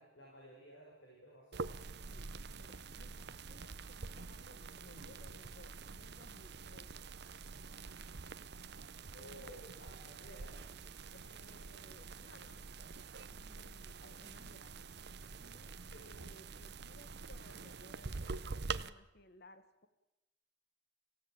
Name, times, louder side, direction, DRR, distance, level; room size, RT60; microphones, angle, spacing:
voice 1, 0.0-2.1 9.1-10.6 15.9-16.2, equal, 75° left, -1 dB, 6.1 m, -55 dB
sound 1, 1.5-18.9, right 4 dB, 55° right, 0.8 m, -46 dB
voice 2, 2.0-6.9 9.3-9.6 11.1-12.7 13.3-14.9 15.4-19.9, left 2 dB, 55° left, 11 dB, 1.6 m, -61 dB
24.5 x 16.0 x 8.9 m, 1.0 s
head